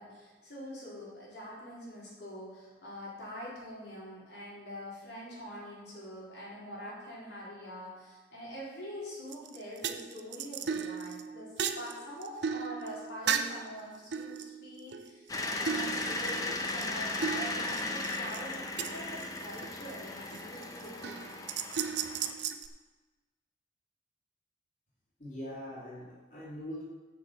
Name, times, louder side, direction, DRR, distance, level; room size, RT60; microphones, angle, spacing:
voice 1, 0.0-11.5 11.8-21.2, equal, 80° left, -6 dB, 4.1 m, -44 dB
sound 1, 9.3-9.6 9.8-13.7 14.1-15.4 15.7-19.7 20.3-20.6 21.0-22.7, right 7 dB, 80° right, 0.6 m, -36 dB
sound 2, 15.3-22.3, left 2 dB, 20° left, 0.8 m, -36 dB
voice 2, 25.2-26.8, equal, 45° left, -8 dB, 2.6 m, -42 dB
7.7 x 6.9 x 7.6 m, 1.2 s
head